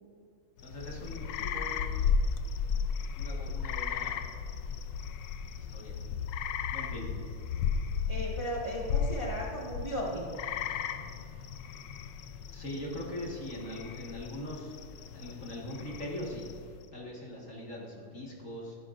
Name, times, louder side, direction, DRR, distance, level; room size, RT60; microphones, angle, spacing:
sound 1, 0.6-16.8, left 6 dB, 75° left, 1.2 m, -35 dB
voice 1, 0.6-1.9 3.2-4.2 5.6-6.0 6.7-7.1 12.5-14.7 15.1-16.5 16.9-18.8, left 1 dB, 45° left, -3 dB, 1.9 m, -41 dB
voice 2, 8.1-10.2, equal, 15° right, -4 dB, 1.5 m, -35 dB
15.5 x 12.0 x 2.5 m, 2.5 s
omnidirectional pair, 2.1 m